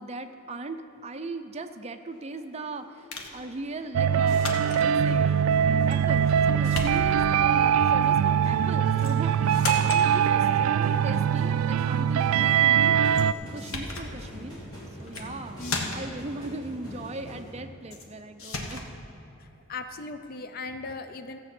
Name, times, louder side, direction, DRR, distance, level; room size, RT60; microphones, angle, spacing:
voice 1, 0.0-5.3 5.9-13.0 13.3-14.6 15.0-18.8, right 2 dB, 30° right, 7 dB, 0.5 m, -38 dB
sound 1, 2.1-17.5, equal, 20° left, 3.2 m, -44 dB
sound 2, 3.1-3.4 4.3-4.9 5.9-6.4 6.6-7.3 9.0-9.2 9.5-10.1 13.1-13.3 13.6-14.1 15.0-15.3 15.6-16.2 17.9-18.1 18.4-18.9, left 3 dB, 75° left, 1.3 m, -34 dB
sound 3, 3.9-13.3, right 8 dB, 85° right, 0.3 m, -22 dB
voice 2, 15.6-16.0 19.7-21.4, left 3 dB, 45° left, 9 dB, 0.4 m, -38 dB
14.5 x 7.9 x 6.0 m, 2.9 s
head